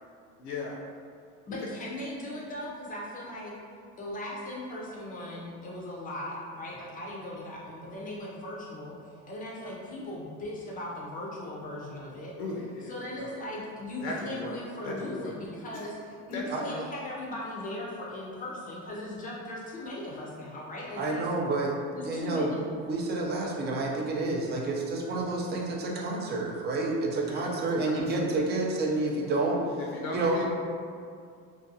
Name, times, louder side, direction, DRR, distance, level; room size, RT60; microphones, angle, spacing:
voice 1, 0.4-0.8 12.4-13.3 14.0-14.6 14.8-15.3 15.7-15.9 16.3-16.8 27.3-27.6 27.8-28.3 29.8-30.4, left 2 dB, 80° left, -3 dB, 0.5 m, -37 dB
voice 2, 1.5-3.5 4.0-12.3 12.8-21.3 21.9-22.8, left 1 dB, 25° left, -4 dB, 0.4 m, -38 dB
voice 3, 21.0-21.7 22.0-22.5 22.9-29.6 30.1-30.4, right 2 dB, 30° right, -1 dB, 0.4 m, -29 dB
2.5 x 2.3 x 2.6 m, 2.3 s
cardioid pair, 125°, 33 cm